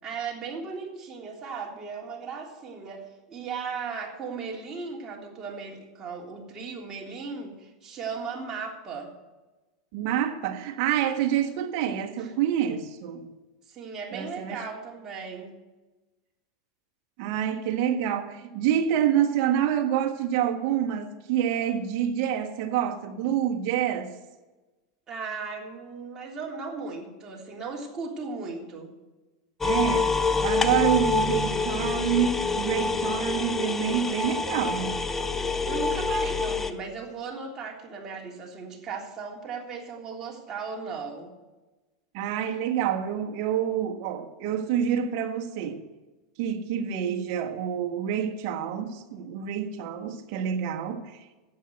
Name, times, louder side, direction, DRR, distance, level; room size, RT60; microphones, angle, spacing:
voice 1, 0.0-9.1 12.2-12.3 13.7-15.5 25.1-28.9 35.6-41.3, right 5 dB, 30° right, 3.4 m, -37 dB
voice 2, 9.9-13.3 14.1-14.6 17.2-24.2 29.6-35.0 42.1-45.8 46.4-51.2, right 9 dB, 55° right, 1.5 m, -27 dB
sound 1, 29.6-36.7, left 4 dB, 15° left, 0.8 m, -26 dB
12.0 x 9.0 x 7.9 m
hypercardioid pair, 95°, 2 cm